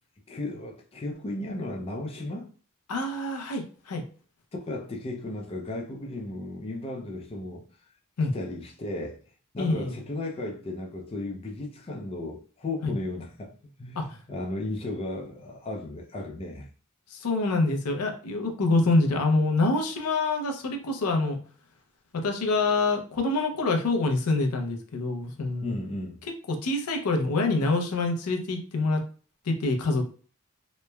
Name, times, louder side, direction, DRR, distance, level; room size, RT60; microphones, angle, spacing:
voice 1, 0.3-2.5 4.5-7.6 8.3-9.2 9.5-13.5 13.8-16.7 25.6-26.2, left 2 dB, 25° left, 0.4 m, -35 dB
voice 2, 2.9-4.0 8.2-8.3 9.6-9.9 12.8-12.9 14.0-14.2 17.1-21.4 22.2-25.8 26.5-29.0 29.4-30.1, left 2 dB, 80° left, 0.5 m, -26 dB
3.0 x 2.0 x 2.2 m
head